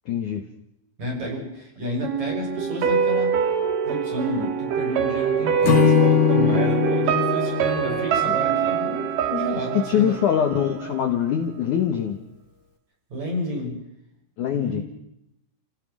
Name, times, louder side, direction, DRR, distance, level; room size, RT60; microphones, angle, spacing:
voice 1, 0.1-0.4 8.3-8.4 9.7-12.2 14.4-14.8, left 9 dB, 75° left, 5 dB, 1.9 m, -23 dB
voice 2, 1.0-3.4 3.8-10.1 13.1-13.8 14.5-14.8, left 1 dB, 35° right, -1 dB, 7.7 m, -31 dB
sound 1, 2.0-11.0 11.3-11.4, right 8 dB, 55° right, 2.6 m, -24 dB
Acoustic guitar / Strum, 5.6-9.0, left 12 dB, 45° left, 3.2 m, -22 dB
30.0 x 17.0 x 6.2 m, 0.80 s
omnidirectional pair, 5.7 m